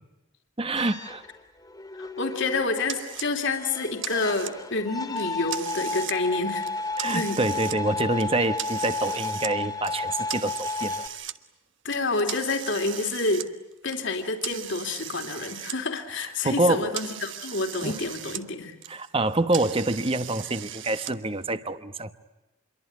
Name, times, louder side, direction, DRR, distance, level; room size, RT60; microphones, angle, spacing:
voice 1, 0.6-1.2 7.0-11.1 16.4-17.0 17.8-18.0 18.9-22.1, right 2 dB, 25° right, 11 dB, 1.1 m, -26 dB
sound 1, 0.8-11.1, left 3 dB, 20° left, 1.9 m, -33 dB
voice 2, 2.0-6.7 7.1-7.4 11.8-13.5 13.8-18.7, left 3 dB, 60° left, 4 dB, 2.9 m, -28 dB
sound 2, 2.9-3.3 3.7-4.8 5.2-6.2 6.5-7.8 8.2-9.5 9.8-11.3 11.9-15.8 16.1-18.4 18.7-21.1, right 11 dB, 60° right, 1.3 m, -38 dB
27.5 x 23.0 x 9.4 m, 0.97 s
head